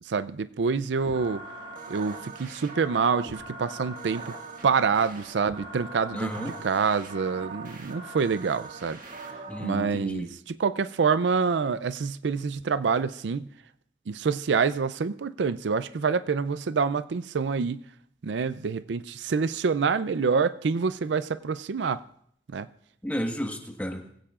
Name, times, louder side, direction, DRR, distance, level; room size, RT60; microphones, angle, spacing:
voice 1, 0.1-1.4 1.9-4.3 4.6-9.0 9.6-13.5 14.1-17.8 18.2-22.0 22.5-22.7, right 5 dB, 75° right, 0.4 m, -26 dB
sound 1, 1.0-9.9, right 3 dB, 50° right, 1.8 m, -41 dB
voice 2, 6.1-6.5 9.5-10.3 23.0-24.0, equal, 10° left, 1.3 m, -32 dB
22.0 x 16.0 x 2.4 m
head